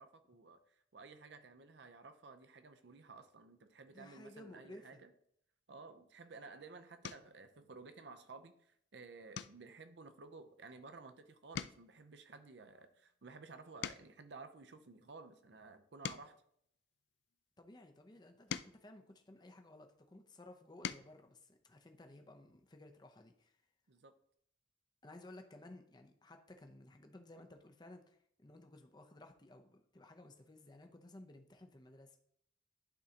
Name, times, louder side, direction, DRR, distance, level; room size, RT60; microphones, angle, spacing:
voice 1, 0.0-5.1 5.7-16.4 23.9-24.1, right 4 dB, 60° right, 9 dB, 0.6 m, -54 dB
voice 2, 3.9-5.0 17.6-23.5 25.0-32.2, left 1 dB, 20° left, 4 dB, 0.6 m, -56 dB
sound 1, 6.2-6.4 7.0-7.4 7.9-8.3 8.6-8.8 9.3-11.1 11.4-14.3 15.0-17.4 18.1-19.9 20.5-21.2 22.6-22.7 23.0-23.2, left 8 dB, 60° left, 0.3 m, -48 dB
11.5 x 3.8 x 2.9 m, 0.69 s
head